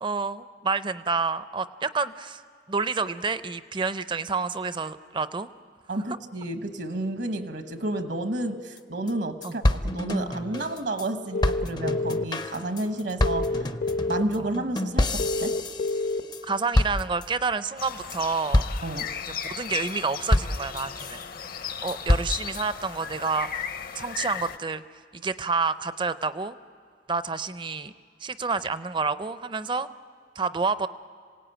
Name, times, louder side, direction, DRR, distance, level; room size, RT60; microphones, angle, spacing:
voice 1, 0.0-2.4 2.7-5.5 9.4-9.5 14.4-14.5 16.4-18.6 19.3-21.2 21.8-23.7 24.0-24.8 25.1-26.6 27.1-27.9 28.2-29.9 30.4-30.9, right 4 dB, 25° right, 13 dB, 0.5 m, -29 dB
voice 2, 5.9-13.7 14.1-15.6 18.8-19.1, right 1 dB, 70° right, 8 dB, 1.1 m, -31 dB
sound 1, 8.8-8.9 9.1-9.2 9.4-11.1 11.4-16.4 16.7-17.5 17.9-18.2 18.5-19.0 19.4-19.9 20.3-21.2 21.7-22.6, left 1 dB, 25° left, 0.5 m, -27 dB
sound 2, 11.3-12.2 13.2-14.2 15.2-16.2, left 2 dB, 75° left, 1.0 m, -27 dB
sound 3, 17.8-24.6, left 8 dB, 50° left, 0.8 m, -36 dB
26.5 x 17.5 x 9.0 m, 2.1 s
head